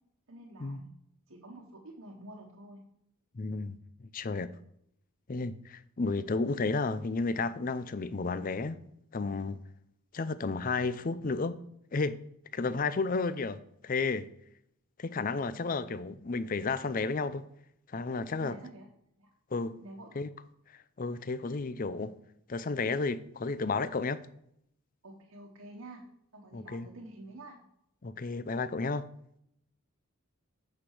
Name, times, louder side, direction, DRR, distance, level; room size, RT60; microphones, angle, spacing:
voice 1, 0.3-0.9 1.3-2.8 18.4-18.9 19.2-19.3 19.8-20.2 25.0-26.0 26.3-27.6, right 1 dB, 75° right, 1.4 m, -48 dB
voice 2, 3.3-4.5 5.3-8.8 9.1-9.6 10.1-11.6 11.9-12.2 12.5-14.3 15.0-17.4 17.9-18.6 19.5-19.8 20.2-20.3 21.0-22.1 22.5-24.2 26.5-26.9 28.0-29.1, left 3 dB, 40° left, 0.5 m, -32 dB
8.7 x 6.2 x 4.9 m
head